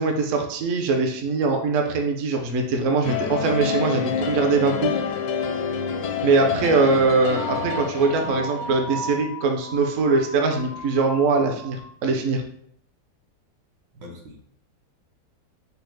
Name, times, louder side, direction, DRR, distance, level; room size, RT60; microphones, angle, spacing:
voice 1, 0.0-5.0 6.2-12.4, right 3 dB, 60° right, 3 dB, 0.9 m, -22 dB
sound 1, 3.0-9.3, left 7 dB, 75° left, 1.1 m, -28 dB
voice 2, 6.5-7.1 8.2-8.7 13.9-14.4, equal, 80° right, 1 dB, 1.6 m, -39 dB
sound 2, 7.3-12.0, right 1 dB, 20° right, 0.4 m, -36 dB
5.3 x 2.1 x 4.6 m, 0.67 s
omnidirectional pair, 1.8 m